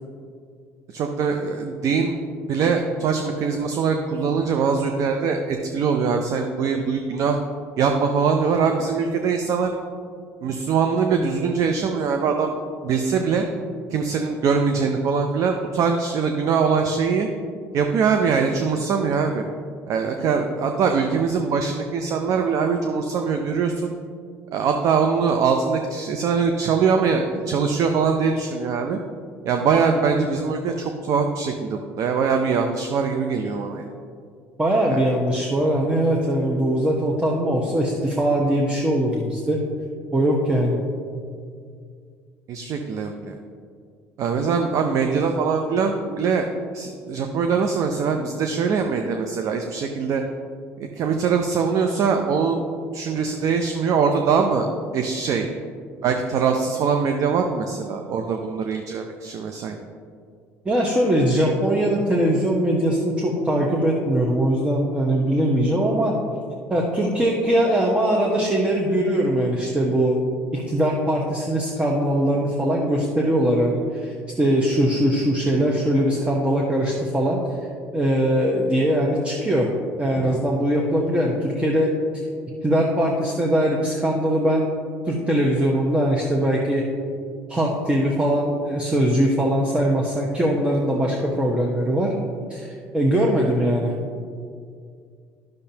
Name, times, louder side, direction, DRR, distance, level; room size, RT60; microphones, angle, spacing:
voice 1, 0.9-2.2 2.5-7.4 7.8-9.7 10.4-12.6 12.8-13.4 13.9-17.3 17.7-19.4 19.9-23.9 24.5-29.0 29.4-33.9 34.9-35.0 42.5-43.4 44.2-46.5 46.7-50.2 51.0-52.7 52.9-55.5 56.0-59.8 80.3-80.4, right 5 dB, 60° right, 4 dB, 0.6 m, -22 dB
voice 2, 34.6-39.6 40.1-40.8 60.6-66.1 66.7-70.2 70.5-77.4 77.9-79.7 80.0-81.9 82.6-84.7 85.1-86.8 87.5-92.1 92.5-93.9, right 1 dB, 15° right, -2 dB, 1.0 m, -21 dB
10.0 x 6.5 x 2.8 m, 2.2 s
hypercardioid pair, 70°, 6 cm